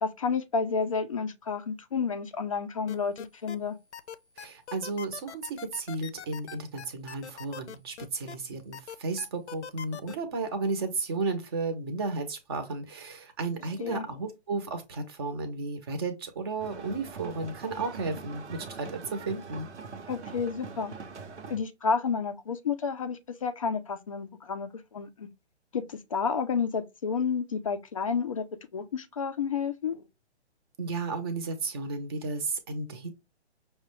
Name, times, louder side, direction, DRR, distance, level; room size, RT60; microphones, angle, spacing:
voice 1, 0.0-3.8 13.8-14.0 20.1-20.9 21.5-25.3 25.7-28.5 28.7-30.0, left 5 dB, 30° left, 0.4 m, -30 dB
sound 1, 2.9-3.6 3.9-8.4 8.7-10.2, left 8 dB, 75° left, 0.7 m, -42 dB
voice 2, 4.4-19.7 30.8-33.1, right 3 dB, 20° right, 0.6 m, -33 dB
sound 2, 16.6-21.6, right 5 dB, 90° right, 0.8 m, -43 dB
5.8 x 2.2 x 3.0 m
hypercardioid pair, 150°, 34 cm